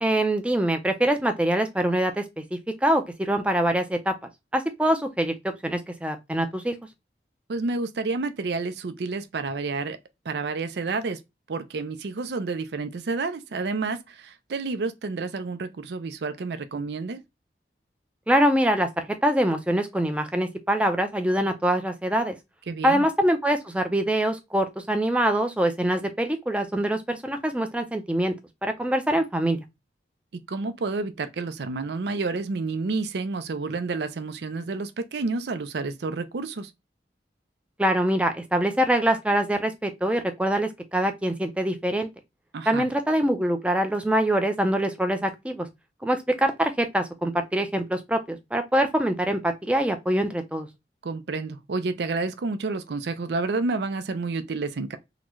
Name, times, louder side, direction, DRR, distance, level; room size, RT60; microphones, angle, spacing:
voice 1, 0.0-4.1 4.5-6.7 18.3-22.4 22.8-28.3 28.6-29.6 37.8-42.1 42.7-45.7 46.0-50.7, right 1 dB, 5° right, 0.5 m, -24 dB
voice 2, 7.5-10.0 10.2-11.2 11.5-17.2 22.7-23.1 30.5-36.7 42.5-42.9 51.0-55.0, right 3 dB, 75° right, 0.5 m, -30 dB
3.8 x 2.1 x 3.1 m
head